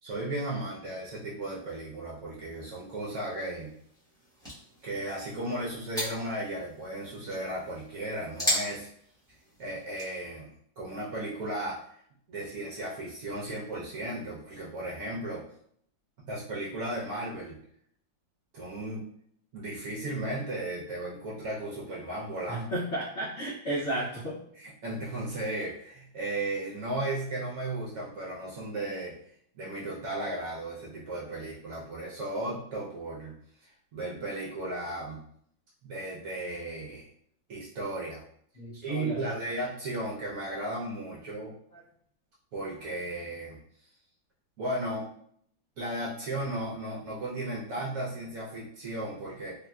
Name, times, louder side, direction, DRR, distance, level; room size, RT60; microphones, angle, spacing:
voice 1, 0.0-3.7 4.8-8.9 9.6-11.8 12.3-15.4 16.3-17.6 18.5-19.1 19.5-22.7 24.6-29.2 29.6-33.3 33.6-35.2 35.8-37.1 37.5-38.2 38.8-41.5 42.5-43.6 44.6-45.1 45.8-49.6, right 1 dB, 65° right, -5 dB, 0.9 m, -35 dB
sound 1, 2.4-10.2, equal, 5° left, 0.4 m, -38 dB
voice 2, 22.5-24.4 38.6-39.3, right 1 dB, 75° left, -6 dB, 0.6 m, -33 dB
3.5 x 2.5 x 2.2 m, 0.66 s
omnidirectional pair, 2.1 m